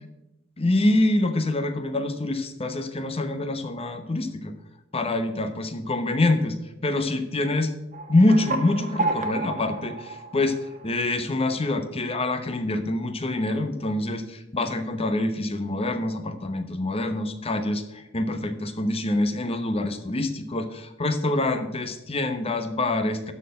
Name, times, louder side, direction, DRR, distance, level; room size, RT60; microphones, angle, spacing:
voice 1, 0.6-4.5 4.9-6.6 6.8-7.7 8.1-10.6 10.8-23.3, left 2 dB, 30° left, 8 dB, 0.9 m, -25 dB
sound 1, 7.9-11.2, right 3 dB, 40° right, 1.1 m, -31 dB
12.5 x 4.4 x 7.6 m, 0.91 s
head